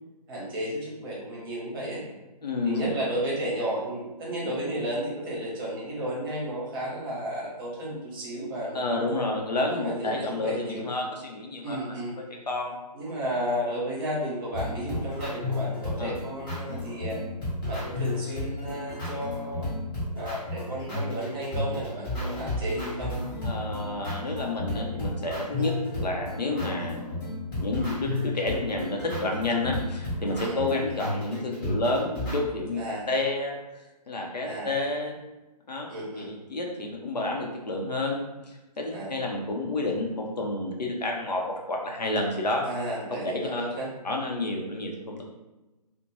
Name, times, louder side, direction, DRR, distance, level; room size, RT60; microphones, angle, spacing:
voice 1, 0.3-2.0 2.6-9.1 9.7-10.8 11.6-12.2 12.9-17.2 17.7-19.7 20.2-23.2 25.6-25.7 30.4-30.6 32.8-33.0 34.4-34.7 35.9-36.3 38.9-39.2 42.6-43.9, right 1 dB, 30° right, -5 dB, 0.9 m, -33 dB
voice 2, 2.4-2.9 8.7-12.7 16.0-16.1 23.4-27.1 27.5-32.8 33.1-33.6 34.1-35.2 35.7-35.9 36.2-42.6 43.3-43.6 44.0-45.2, left 2 dB, 75° left, 0 dB, 0.6 m, -30 dB
sound 1, 14.5-32.4, left 2 dB, 30° left, 1.1 m, -33 dB
2.4 x 2.1 x 3.0 m, 1.1 s
figure-of-eight pair, 135°, 21 cm